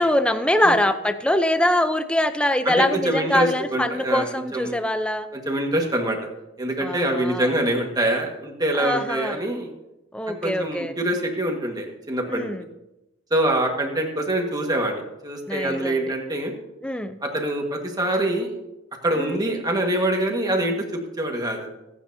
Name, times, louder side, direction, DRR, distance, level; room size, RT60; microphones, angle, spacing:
voice 1, 0.0-5.3 6.8-7.5 8.8-9.4 10.1-10.9 12.3-12.6 15.5-16.2 16.8-17.2 19.2-19.4, left 1 dB, 5° left, 9 dB, 0.6 m, -23 dB
voice 2, 2.6-4.2 4.5-4.8 5.3-6.2 6.6-9.7 10.3-12.5 13.3-16.5 17.2-18.5 19.0-21.7, right 1 dB, 20° right, 2 dB, 1.7 m, -25 dB
25.0 x 8.7 x 2.8 m, 0.94 s
head